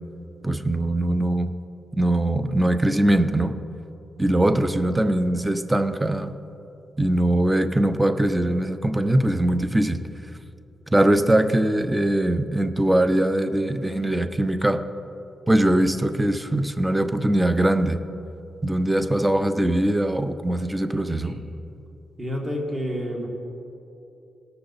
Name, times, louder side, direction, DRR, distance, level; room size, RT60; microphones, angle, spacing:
voice 1, 0.4-1.5 1.9-3.6 4.2-6.4 7.0-10.0 10.9-14.8 15.5-18.0 18.6-21.4, right 1 dB, 10° right, 10 dB, 0.5 m, -21 dB
voice 2, 21.1-21.4 22.2-23.3, equal, 25° right, 0 dB, 1.6 m, -29 dB
17.0 x 6.8 x 4.0 m, 2.9 s
cardioid pair, 95°, 0 cm